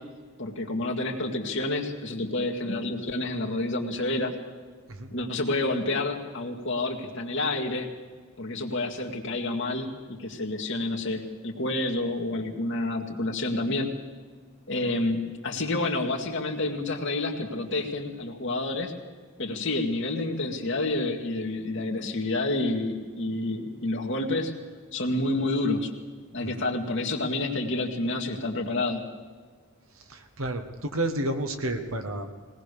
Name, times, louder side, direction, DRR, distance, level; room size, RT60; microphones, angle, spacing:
voice 1, 0.4-4.3 5.1-7.9 8.4-13.9 14.7-18.9 19.4-24.5 24.9-25.9 26.3-29.0, left 2 dB, 55° left, 1 dB, 1.9 m, -29 dB
voice 2, 29.9-32.3, right 1 dB, 65° right, 6 dB, 1.5 m, -31 dB
21.0 x 18.5 x 6.8 m, 1.5 s
head